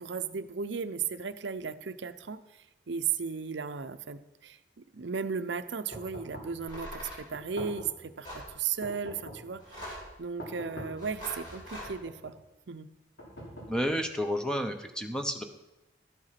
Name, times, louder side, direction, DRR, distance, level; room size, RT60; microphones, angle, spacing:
voice 1, 0.0-2.4 2.9-4.6 4.9-12.4 12.7-12.9, right 6 dB, 70° right, 12 dB, 0.6 m, -35 dB
sound 1, 5.9-6.6 7.3-8.1 8.8-9.6 10.4-11.1 11.8-12.4 13.2-14.1, equal, 65° left, 3.6 m, -44 dB
sound 2, 6.7-7.2 8.2-8.5 9.6-10.2 11.0-11.9, equal, 25° left, 3.6 m, -42 dB
voice 2, 13.7-15.4, equal, 5° left, 5 dB, 0.8 m, -31 dB
12.5 x 7.9 x 5.8 m, 1.0 s
head